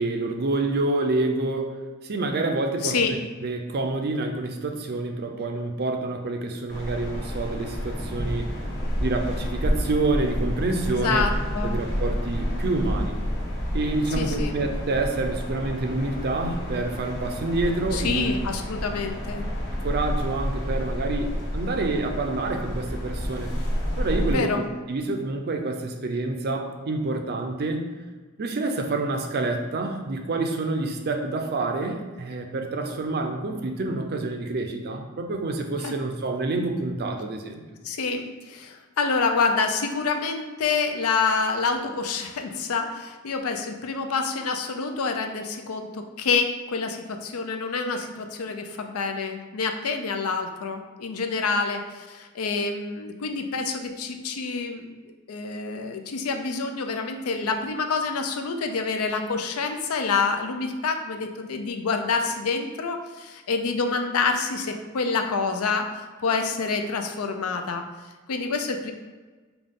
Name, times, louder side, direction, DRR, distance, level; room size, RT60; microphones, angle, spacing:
voice 1, 0.0-1.7 2.0-3.0 3.4-8.5 9.0-11.3 11.6-13.2 13.7-18.3 19.8-23.5 24.0-24.6 24.9-27.9 28.4-37.6, right 2 dB, 45° right, 4 dB, 0.5 m, -27 dB
voice 2, 2.8-3.1 10.9-11.8 14.2-14.5 17.9-19.4 24.3-24.6 35.8-36.0 37.8-54.9 55.3-65.9 66.2-67.8 68.3-68.9, left 4 dB, 70° left, 5 dB, 0.5 m, -27 dB
sound 1, 6.7-24.3, equal, 55° left, 1.2 m, -29 dB
5.2 x 2.3 x 3.7 m, 1.3 s
head